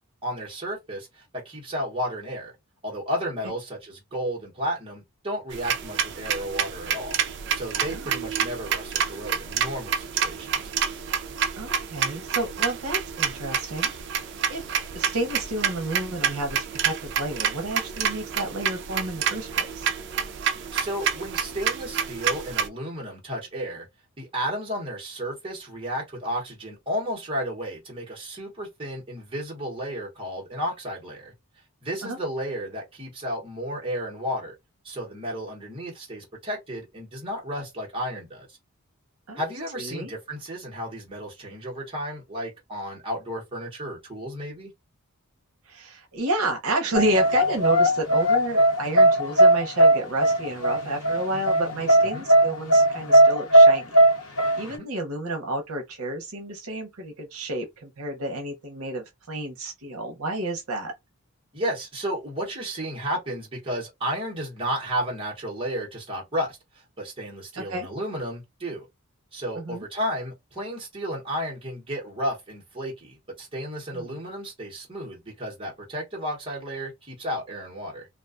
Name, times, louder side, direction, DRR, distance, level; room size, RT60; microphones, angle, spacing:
voice 1, 0.2-2.5 2.8-7.2 7.5-10.7 20.7-23.9 24.2-31.3 31.8-34.5 34.8-38.6 39.4-44.7 52.1-52.3 54.7-54.9 61.5-68.9 69.3-78.1, equal, 25° right, 0.9 m, -33 dB
sound 1, 5.5-22.7, right 7 dB, 50° right, 0.3 m, -28 dB
voice 2, 11.6-14.2 14.5-14.6 14.9-19.9 32.0-32.2 39.3-40.1 45.7-53.9 54.6-60.9 67.6-67.9 69.6-69.8 73.9-74.1, right 1 dB, 75° right, 0.7 m, -30 dB
sound 2, 46.9-54.7, right 1 dB, 80° left, 0.7 m, -18 dB
2.4 x 2.2 x 2.4 m
head